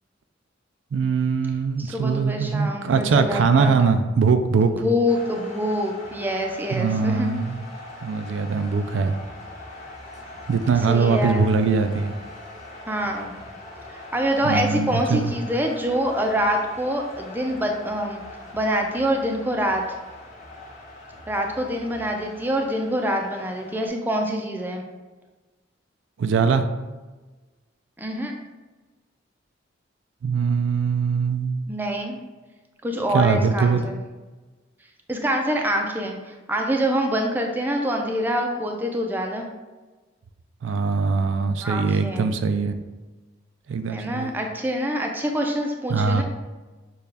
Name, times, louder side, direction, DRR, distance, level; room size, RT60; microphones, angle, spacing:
voice 1, 0.9-4.8 6.7-7.6 8.0-9.1 10.5-12.1 14.4-15.3 26.2-26.6 30.2-31.6 33.1-33.8 40.6-42.7 43.7-44.3 45.9-46.2, right 5 dB, 75° right, 9 dB, 0.4 m, -22 dB
voice 2, 1.8-3.9 4.7-7.3 10.9-11.5 12.9-13.3 13.9-18.2 18.5-19.8 21.3-24.8 28.0-28.3 31.7-32.2 32.8-34.0 35.1-39.5 41.6-42.3 43.9-46.2, equal, 10° right, 2 dB, 0.4 m, -25 dB
sound 1, 5.1-23.9, left 2 dB, 40° left, 1.2 m, -42 dB
6.7 x 2.3 x 3.4 m, 1.2 s
head